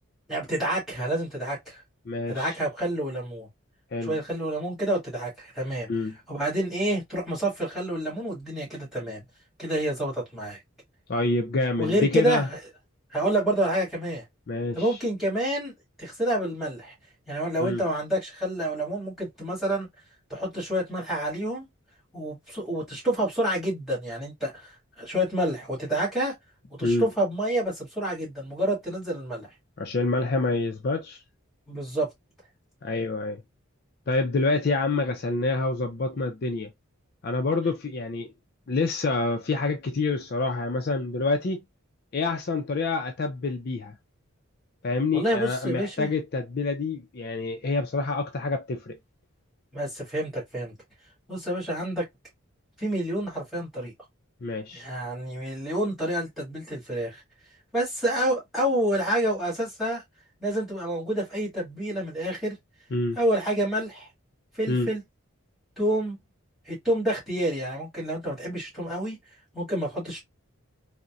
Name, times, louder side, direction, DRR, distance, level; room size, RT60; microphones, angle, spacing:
voice 1, 0.3-1.8 2.3-3.5 4.0-5.9 6.3-9.2 9.6-10.6 11.8-12.4 13.1-14.2 14.7-16.9 17.3-19.9 20.3-21.6 22.1-26.3 26.7-29.5 31.7-32.1 45.1-46.1 49.7-50.7 51.3-52.1 52.8-53.9 54.7-57.2 57.7-60.0 60.4-62.6 63.2-64.1 64.5-65.0 65.8-66.2 66.7-69.2 69.5-70.2, right 1 dB, ahead, 1.7 m, -28 dB
voice 2, 2.1-2.6 3.9-4.2 5.9-6.2 11.1-12.5 14.5-15.0 17.6-17.8 26.8-27.1 29.8-31.2 32.8-33.4 34.1-36.7 37.2-38.3 38.7-41.6 42.1-44.0 44.8-49.0 54.4-54.8 62.9-63.2 64.7-64.9, left 3 dB, 45° left, 0.4 m, -27 dB
3.9 x 2.1 x 2.3 m
head